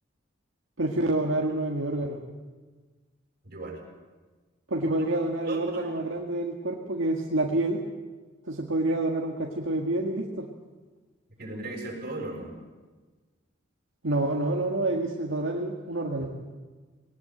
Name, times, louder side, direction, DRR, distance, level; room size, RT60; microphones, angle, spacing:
voice 1, 0.8-2.2 4.7-7.8 8.5-10.5 14.0-16.3, right 2 dB, 80° right, 0 dB, 1.8 m, -28 dB
voice 2, 3.4-3.8 4.8-4.9 5.4-5.9 11.4-12.6, right 2 dB, 50° right, 0 dB, 7.1 m, -36 dB
20.5 x 19.0 x 7.9 m, 1.3 s
head